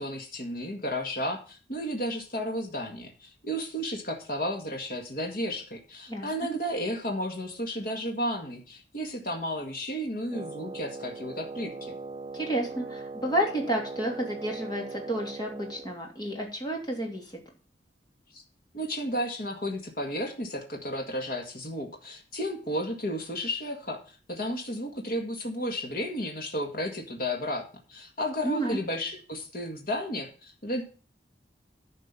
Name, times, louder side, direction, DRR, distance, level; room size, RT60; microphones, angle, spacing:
voice 1, 0.0-12.0 18.3-18.4 18.7-24.0 24.3-27.6 27.9-30.3 30.6-30.8, equal, 55° left, 2 dB, 2.0 m, -33 dB
Wind instrument woodwind instrument, 10.3-16.0, right 3 dB, 25° right, 0.6 m, -40 dB
voice 2, 12.3-17.3 28.4-28.8, right 1 dB, 25° left, 1 dB, 2.9 m, -30 dB
10.5 x 5.4 x 7.3 m, 0.37 s
head